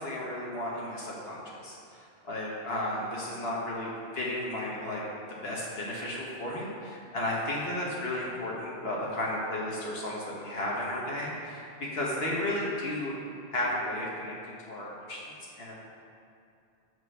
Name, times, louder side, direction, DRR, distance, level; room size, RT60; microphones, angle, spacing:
voice 1, 0.0-5.0 5.4-11.6 11.9-13.1 13.5-15.7, left 1 dB, 70° left, -4 dB, 1.4 m, -34 dB
7.5 x 6.3 x 5.4 m, 2.5 s
omnidirectional pair, 1.1 m